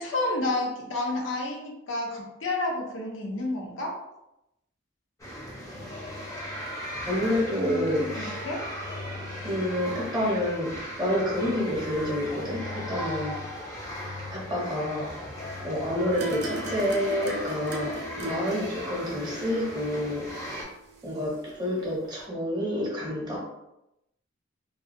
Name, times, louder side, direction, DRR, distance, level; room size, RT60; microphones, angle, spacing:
voice 1, 0.0-4.0 7.9-8.6, left 2 dB, 80° left, 0 dB, 0.6 m, -30 dB
sound 1, 5.2-20.6, left 1 dB, 15° left, 0.5 m, -37 dB
voice 2, 7.0-8.4 9.4-13.4 14.3-15.1 15.6-20.3 21.0-23.4, left 1 dB, 20° right, -5 dB, 0.7 m, -28 dB
sound 2, 16.1-21.2 21.5-21.6, right 1 dB, 55° right, 0.4 m, -39 dB
2.3 x 2.1 x 2.5 m, 0.86 s
head